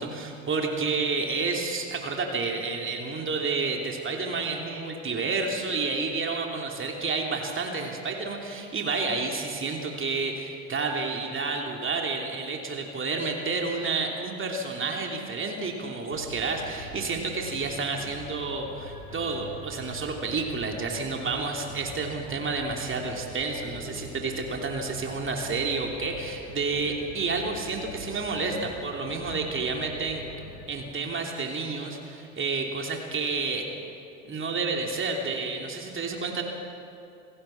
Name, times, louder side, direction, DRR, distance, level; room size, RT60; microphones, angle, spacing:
voice 1, 0.0-30.2 30.7-33.7 34.2-36.4, right 4 dB, 30° right, 2 dB, 3.1 m, -30 dB
sound 1, 16.1-31.2, left 1 dB, 90° left, 2.6 m, -43 dB
27.5 x 16.5 x 6.0 m, 2.7 s
figure-of-eight pair, 65°, 40 cm